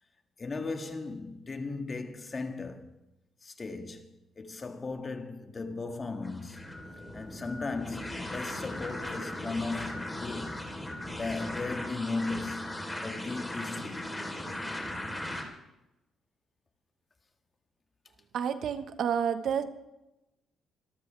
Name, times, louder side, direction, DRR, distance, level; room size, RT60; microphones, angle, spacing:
voice 1, 0.4-2.9 3.4-4.1 4.4-6.8 7.1-10.6 11.2-12.7 13.0-14.1, left 3 dB, 35° left, 1.8 m, -36 dB
sound 1, 6.2-15.4, left 1 dB, 15° left, 3.7 m, -38 dB
voice 2, 18.3-19.6, right 8 dB, 65° right, 1.3 m, -29 dB
25.0 x 13.5 x 3.4 m
cardioid pair, 90°, 0 cm